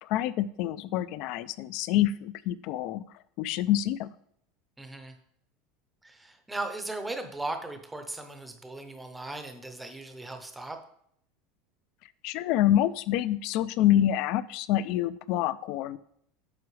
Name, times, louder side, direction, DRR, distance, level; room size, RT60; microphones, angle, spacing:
voice 1, 0.0-3.0 3.4-4.1 12.2-16.0, left 12 dB, 45° left, 16 dB, 0.3 m, -27 dB
voice 2, 4.8-5.1 6.0-10.8, right 2 dB, 5° right, 6 dB, 0.7 m, -37 dB
9.5 x 6.0 x 3.2 m, 0.69 s
supercardioid pair, 180°, 0 cm